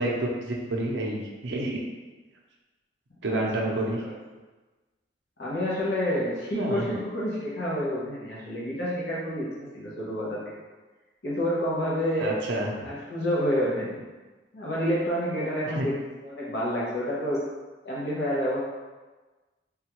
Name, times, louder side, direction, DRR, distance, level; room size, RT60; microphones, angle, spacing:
voice 1, 0.0-1.8 3.2-4.0 6.5-6.9 12.2-12.9 15.7-15.9, right 1 dB, 80° right, -1 dB, 0.6 m, -29 dB
voice 2, 3.3-4.1 5.4-10.4 11.2-12.4 12.8-14.0 14.5-17.4 17.8-18.6, equal, 75° left, -6 dB, 0.8 m, -29 dB
3.5 x 2.3 x 2.9 m, 1.2 s
head